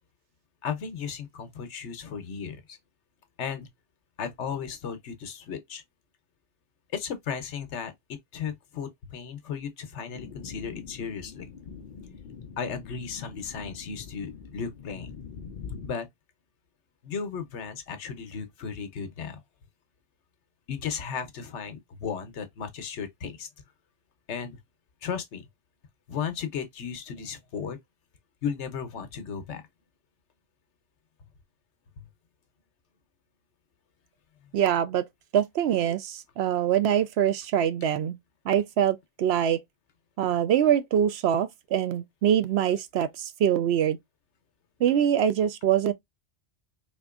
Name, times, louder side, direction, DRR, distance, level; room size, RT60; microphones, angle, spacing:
voice 1, 0.6-2.6 3.4-3.7 4.2-5.8 6.9-11.5 12.6-15.2 15.8-16.1 17.0-19.4 20.7-23.5 24.3-24.6 25.0-25.5 26.1-27.8 28.4-29.6 32.0-32.1, left 6 dB, 80° left, 1.1 m, -35 dB
sound 1, 10.1-15.9, left 6 dB, 55° left, 0.6 m, -43 dB
voice 2, 34.5-35.0 35.3-38.2 38.5-39.6 40.2-44.0 44.8-45.9, right 9 dB, 70° right, 0.8 m, -24 dB
4.1 x 2.9 x 2.4 m
omnidirectional pair, 1.2 m